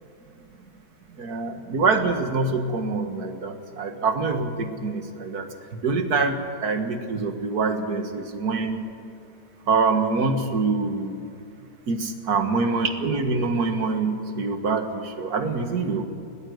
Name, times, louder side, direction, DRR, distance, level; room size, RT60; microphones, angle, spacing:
voice 1, 1.2-5.5 5.8-8.9 9.7-11.2 11.9-16.0, right 4 dB, 60° right, 7 dB, 2.1 m, -25 dB
20.0 x 19.0 x 8.0 m, 2.6 s
omnidirectional pair, 1.9 m